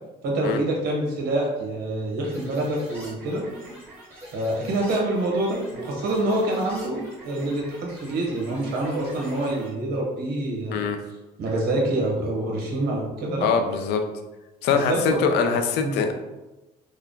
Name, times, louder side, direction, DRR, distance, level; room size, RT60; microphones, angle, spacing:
voice 1, 0.2-3.4 4.3-10.8 11.4-13.5 14.7-15.2 15.8-16.0, right 1 dB, 70° right, -2 dB, 1.1 m, -26 dB
sound 1, 2.2-9.7, right 1 dB, 10° right, 1.4 m, -44 dB
voice 2, 13.4-14.0 14.6-16.1, left 6 dB, 85° left, 6 dB, 0.5 m, -23 dB
3.4 x 2.2 x 3.6 m, 1.1 s
cardioid pair, 110°, 17 cm